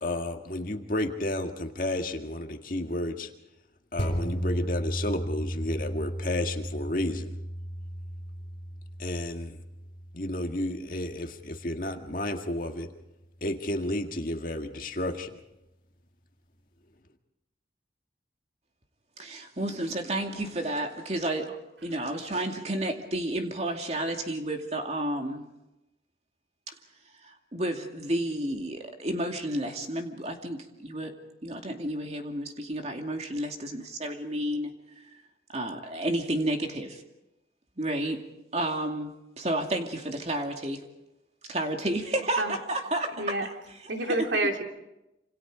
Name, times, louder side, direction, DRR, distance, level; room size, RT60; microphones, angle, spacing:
voice 1, 0.0-3.3 3.9-7.3 9.0-9.6 10.1-12.9 13.4-15.4, left 1 dB, 50° left, 4 dB, 1.8 m, -32 dB
sound 1, 4.0-12.8 13.2-13.3, equal, 30° left, 4.1 m, -35 dB
voice 2, 19.2-21.6 21.8-25.4 26.7-26.8 27.2-31.1 31.4-35.0 35.5-37.0 37.8-38.2 38.5-40.8 41.5-43.5 43.8-44.3, right 1 dB, 35° right, 3 dB, 2.5 m, -31 dB
voice 3, 43.2-43.5 43.9-44.6, right 2 dB, 85° right, 3 dB, 2.9 m, -28 dB
28.0 x 26.5 x 5.0 m, 0.91 s
head